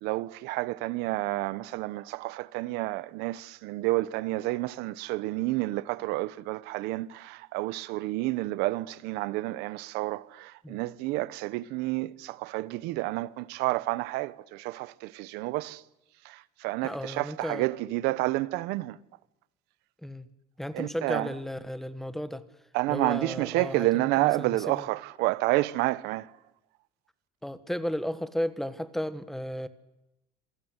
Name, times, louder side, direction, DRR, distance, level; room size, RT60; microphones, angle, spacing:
voice 1, 0.0-15.8 16.2-19.0 20.7-21.3 22.7-26.3, right 19 dB, 85° right, 1.1 m, -30 dB
voice 2, 16.8-17.7 20.0-20.3 20.6-22.4 22.9-24.9 27.4-29.7, equal, ahead, 1.3 m, -34 dB
27.0 x 22.0 x 8.2 m
cardioid pair, 165°, 17 cm